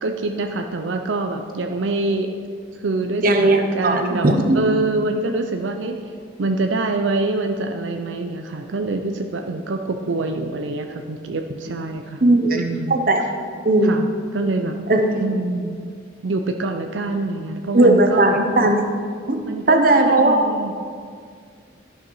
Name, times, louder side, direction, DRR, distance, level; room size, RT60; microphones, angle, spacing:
voice 1, 0.0-2.3 2.7-4.3 4.5-6.1 6.4-12.2 12.5-13.0 13.8-14.1 14.3-14.8 15.2-15.8 16.2-18.4 19.5-20.8, right 2 dB, 75° right, 4 dB, 0.6 m, -25 dB
voice 2, 3.2-4.6 12.2-12.6 12.9-13.2 13.6-14.0 14.9-15.1 17.7-18.8 19.3-19.4 19.7-20.5, right 2 dB, 45° right, 4 dB, 0.9 m, -16 dB
12.0 x 5.8 x 5.5 m, 2.1 s
head